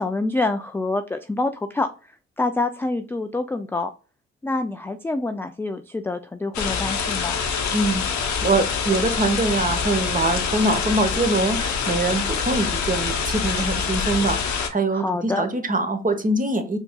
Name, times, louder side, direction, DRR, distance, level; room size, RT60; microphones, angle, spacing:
voice 1, 0.0-1.9 2.4-3.9 4.4-7.4 14.9-15.5, left 2 dB, 10° left, 7 dB, 0.3 m, -26 dB
sound 1, 6.5-14.7, left 6 dB, 65° left, 0.8 m, -25 dB
voice 2, 7.7-8.0 8.4-16.8, right 2 dB, 25° right, 7 dB, 0.9 m, -23 dB
4.5 x 2.8 x 2.2 m, 0.35 s
supercardioid pair, 50°, 30 cm